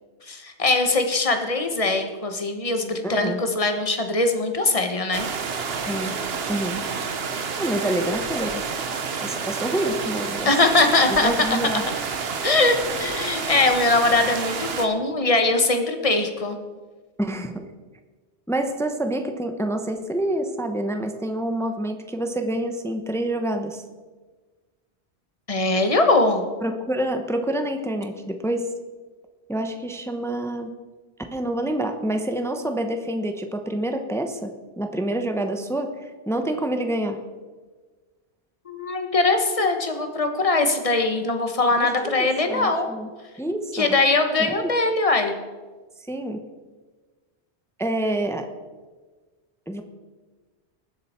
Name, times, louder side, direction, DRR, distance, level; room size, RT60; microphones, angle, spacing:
voice 1, 0.3-5.3 10.4-11.6 12.4-16.6 25.5-26.4 38.7-42.9 43.7-45.4, left 3 dB, 30° left, 6 dB, 1.3 m, -21 dB
voice 2, 3.0-3.4 5.8-6.2 6.5-6.9 7.6-8.7 9.2-10.5 11.1-11.9 17.2-17.7 18.5-23.8 26.6-28.7 29.5-30.7 31.3-37.2 41.8-43.1 43.4-44.0 44.4-44.7 46.1-46.4 47.8-48.5 49.7-49.8, right 1 dB, 5° left, 6 dB, 0.7 m, -27 dB
sound 1, 5.1-14.9, right 5 dB, 60° right, 1.2 m, -29 dB
20.5 x 7.6 x 4.4 m, 1.3 s
omnidirectional pair, 1.1 m